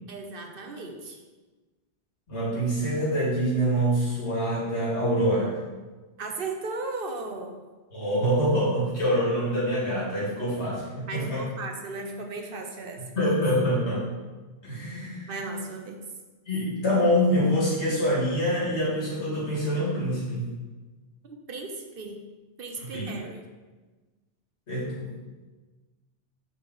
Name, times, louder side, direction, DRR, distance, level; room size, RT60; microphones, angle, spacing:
voice 1, 0.1-1.2 6.2-7.5 11.1-13.0 15.3-16.0 21.2-22.2 22.6-23.4, right 3 dB, 55° right, 3 dB, 1.0 m, -36 dB
voice 2, 2.3-5.6 7.9-11.4 13.0-14.0 14.6-15.3 16.5-20.5 22.8-23.1 24.7-25.1, equal, 85° left, -7 dB, 2.4 m, -25 dB
5.0 x 4.7 x 6.2 m, 1.3 s
omnidirectional pair, 1.1 m